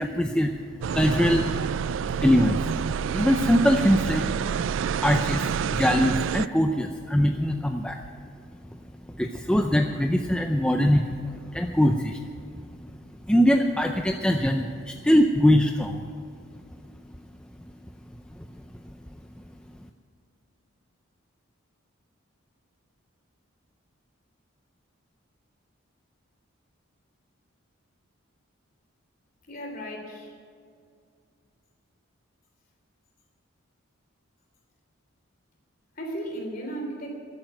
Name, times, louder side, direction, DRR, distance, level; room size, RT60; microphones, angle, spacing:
voice 1, 0.0-4.7 5.0-8.2 8.5-13.0 13.2-16.1 17.1-17.2 17.6-17.7 18.3-19.4, equal, 5° left, 4 dB, 0.5 m, -24 dB
sound 1, 0.8-6.5, right 7 dB, 65° right, 0.3 m, -28 dB
voice 2, 29.5-30.3 35.9-37.2, right 1 dB, 45° left, 1 dB, 3.2 m, -35 dB
13.5 x 8.9 x 9.2 m, 2.2 s
head